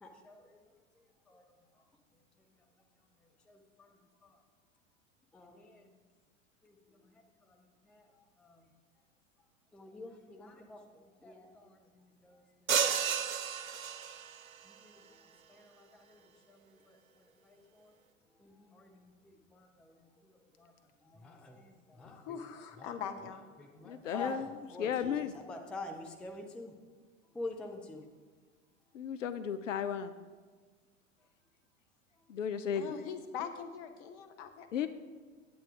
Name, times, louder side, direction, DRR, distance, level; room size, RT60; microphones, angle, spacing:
voice 1, 0.0-0.6 1.3-1.4 3.5-3.9 4.2-4.4 5.3-5.9 6.6-6.8 7.5-7.6 7.9-8.0 8.4-8.6 9.7-12.8 14.7-15.0 15.5-16.2 16.5-17.0 17.4-17.9 18.4-20.7 21.0-22.2 22.8-22.9 23.6-25.1 25.5-26.7 27.3-28.0, left 2 dB, 5° left, 4 dB, 0.4 m, -47 dB
sound 1, 12.7-14.5, right 8 dB, 85° right, 0.5 m, -32 dB
voice 2, 22.0-23.4 32.7-34.7, left 7 dB, 40° left, 7 dB, 1.0 m, -42 dB
voice 3, 23.8-24.5 24.8-25.3 28.9-30.1 32.3-32.9 34.7-34.9, left 8 dB, 70° left, 12 dB, 0.5 m, -34 dB
8.7 x 8.5 x 3.6 m, 1.4 s
figure-of-eight pair, 85°, 39 cm